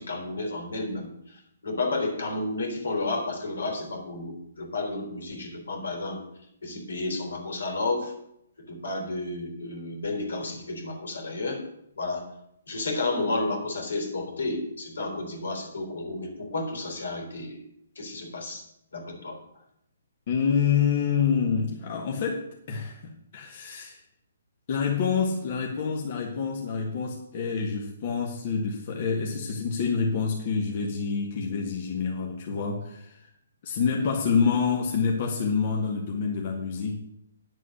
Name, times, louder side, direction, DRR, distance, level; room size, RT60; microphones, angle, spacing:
voice 1, 0.0-6.2 6.6-8.1 8.7-11.6 12.0-12.3 12.7-17.6 18.0-18.6 18.9-19.4, left 2 dB, 80° left, 3 dB, 3.6 m, -31 dB
voice 2, 20.3-24.0 24.7-33.3 33.6-37.0, left 6 dB, 50° left, 0 dB, 1.8 m, -27 dB
9.8 x 7.6 x 6.5 m, 0.77 s
hypercardioid pair, 145°, 0 cm